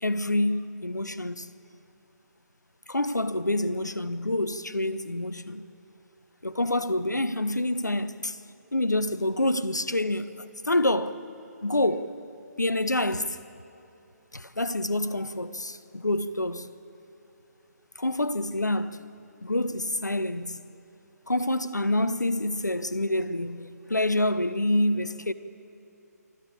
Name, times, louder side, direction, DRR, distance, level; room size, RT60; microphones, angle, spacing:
voice 1, 0.0-1.5 2.9-5.6 6.4-8.4 8.7-11.2 11.6-12.1 12.6-13.4 14.3-16.7 18.0-19.0 19.4-20.6 21.3-25.3, left 1 dB, 85° left, 0.9 m, -27 dB
25.0 x 13.5 x 8.5 m
figure-of-eight pair, 140°, 9 cm